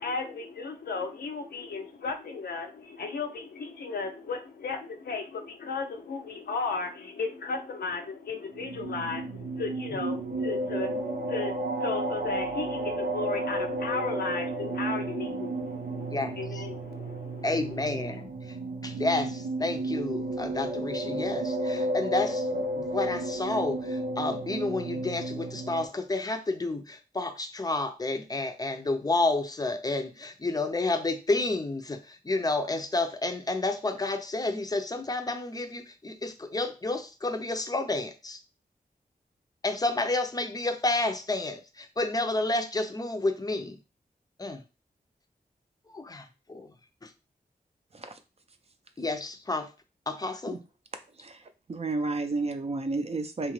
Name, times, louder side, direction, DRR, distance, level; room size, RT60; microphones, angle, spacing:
voice 1, 0.0-18.2, left 4 dB, 85° left, 0.5 m, -35 dB
sound 1, 8.5-25.9, right 1 dB, 85° right, 0.6 m, -32 dB
voice 2, 17.4-18.6 18.8-38.4 39.6-43.8 44.4-44.6 45.9-46.7 47.0-47.1 49.0-49.7 50.1-50.5, left 2 dB, 25° left, 0.5 m, -30 dB
voice 3, 51.1-53.5, right 3 dB, 40° right, 0.5 m, -32 dB
2.8 x 2.4 x 3.1 m
wide cardioid pair, 60°, 16 cm